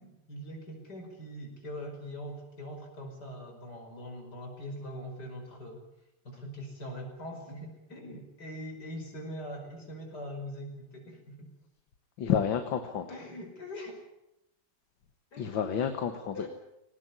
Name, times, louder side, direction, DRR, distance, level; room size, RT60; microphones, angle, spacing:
voice 1, 0.0-5.9 6.2-11.5 13.1-14.0 15.3-15.7 16.3-16.5, equal, 45° left, 3 dB, 6.0 m, -42 dB
voice 2, 12.2-13.1 15.4-16.5, left 8 dB, 60° left, 7 dB, 2.1 m, -30 dB
19.5 x 18.5 x 9.8 m, 0.86 s
omnidirectional pair, 2.4 m